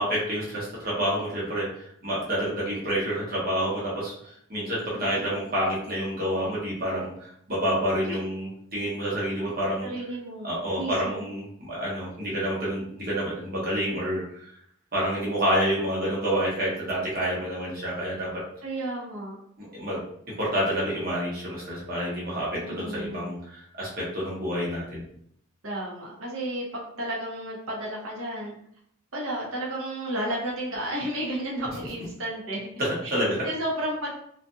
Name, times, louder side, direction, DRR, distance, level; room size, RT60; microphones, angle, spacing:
voice 1, 0.0-9.9 10.4-14.5 14.9-18.4 19.6-20.0 20.3-25.0 32.8-33.4, equal, 45° right, -6 dB, 1.1 m, -28 dB
voice 2, 4.9-5.4 8.0-8.2 9.8-10.5 10.8-11.3 18.6-19.4 22.5-23.3 25.6-28.6 29.1-32.7 33.0-33.1 33.4-34.1, right 1 dB, 70° right, -3 dB, 0.9 m, -32 dB
2.7 x 2.5 x 2.4 m, 0.67 s
head